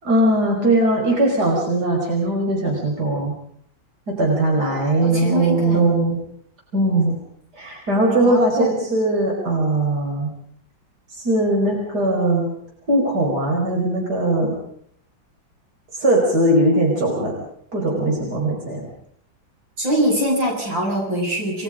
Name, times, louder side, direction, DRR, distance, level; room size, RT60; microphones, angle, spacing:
voice 1, 0.0-3.3 4.1-6.2 6.7-7.2 7.5-10.3 11.1-12.5 12.9-14.5 15.9-17.4 17.7-18.8, right 1 dB, 55° right, -1 dB, 5.9 m, -20 dB
voice 2, 5.0-5.9 8.2-8.7 19.8-21.6, equal, 75° right, -1 dB, 7.5 m, -23 dB
29.5 x 21.0 x 5.1 m, 0.64 s
omnidirectional pair, 2.1 m